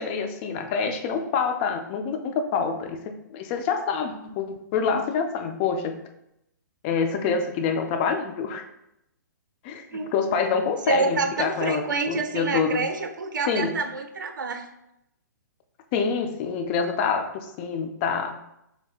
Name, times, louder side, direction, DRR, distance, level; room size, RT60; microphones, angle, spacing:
voice 1, 0.0-6.0 6.8-8.6 9.6-12.9 13.5-13.8 15.9-18.4, left 5 dB, 30° left, 5 dB, 0.5 m, -26 dB
voice 2, 10.8-14.7, right 4 dB, 70° right, 5 dB, 0.6 m, -27 dB
4.8 x 3.3 x 2.4 m, 0.83 s
hypercardioid pair, 130°, 11 cm